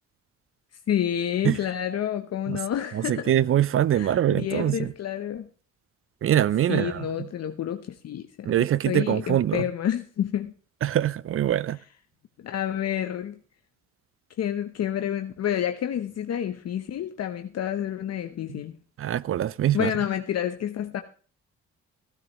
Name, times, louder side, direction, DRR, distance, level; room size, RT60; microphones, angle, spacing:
voice 1, 0.9-3.3 3.9-5.5 6.7-10.5 12.4-13.4 14.4-18.7 19.7-21.0, left 10 dB, 55° left, 0.9 m, -29 dB
voice 2, 2.9-4.9 6.2-7.0 8.5-9.6 10.8-11.8 19.0-19.9, right 11 dB, 45° right, 0.5 m, -23 dB
16.0 x 12.0 x 3.0 m
cardioid pair, 90°, 30 cm